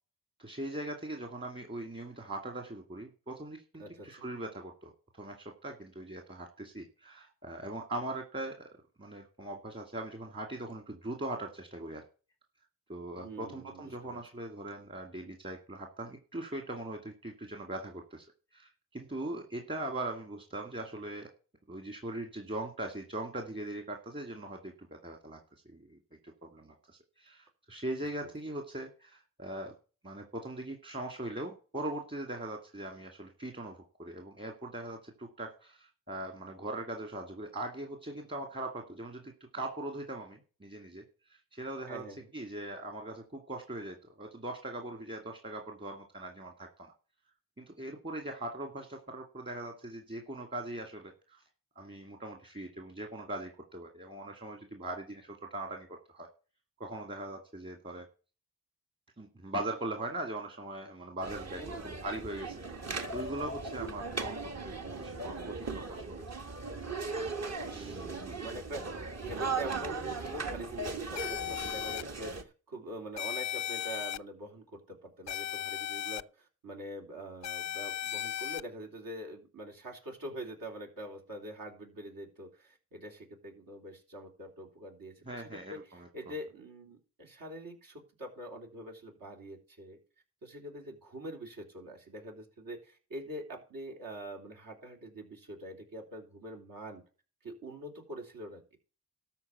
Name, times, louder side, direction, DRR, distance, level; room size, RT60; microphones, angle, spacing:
voice 1, 0.4-8.5 9.0-12.0 12.9-18.3 18.5-21.3 21.7-25.4 25.7-26.0 26.2-29.7 30.0-41.0 41.3-42.0 42.3-46.9 47.6-51.4 51.8-55.9 56.1-56.3 56.8-58.1 59.2-66.2 67.7-68.0 85.3-86.3, right 1 dB, 30° right, 3 dB, 2.3 m, -40 dB
voice 2, 3.8-4.3 13.2-14.2 41.9-42.3 61.6-62.0 67.6-90.0 90.4-97.0 97.4-98.6, right 1 dB, 70° right, 1 dB, 3.3 m, -44 dB
sound 1, 61.2-72.4, right 4 dB, 45° right, 1.5 m, -38 dB
sound 2, 71.2-72.0 73.2-74.2 75.3-76.2 77.4-78.6, left 11 dB, 50° left, 0.4 m, -36 dB
13.0 x 4.4 x 8.0 m, 0.36 s
cardioid pair, 60°, 36 cm